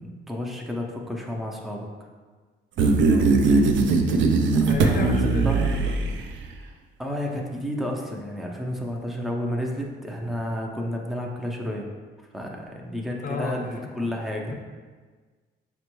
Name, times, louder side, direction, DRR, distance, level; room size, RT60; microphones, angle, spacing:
voice 1, 0.0-1.9 4.4-5.6 7.0-11.9 12.3-14.5, left 1 dB, ahead, 0 dB, 0.5 m, -31 dB
voice 2, 2.8-3.3 4.6-5.9 13.2-13.6 14.5-14.6, left 3 dB, 45° left, 1 dB, 0.6 m, -33 dB
sound 1, 2.8-6.5, right 3 dB, 70° right, 0.4 m, -20 dB
5.1 x 2.2 x 3.0 m, 1.4 s
cardioid pair, 90°, 20 cm